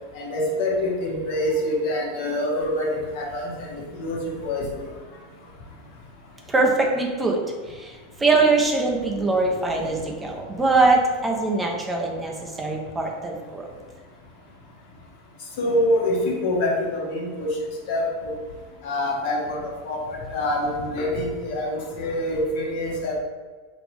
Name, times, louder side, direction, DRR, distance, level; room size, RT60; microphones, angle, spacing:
voice 1, 0.1-3.7 4.0-4.9 15.6-17.6 17.9-18.3 18.8-23.1, left 1 dB, 60° left, -3 dB, 1.3 m, -25 dB
voice 2, 6.5-7.4 7.7-7.9 8.2-13.7, right 3 dB, 15° right, 0 dB, 0.7 m, -22 dB
5.2 x 2.9 x 3.4 m, 1.4 s
figure-of-eight pair, 85°, 0 cm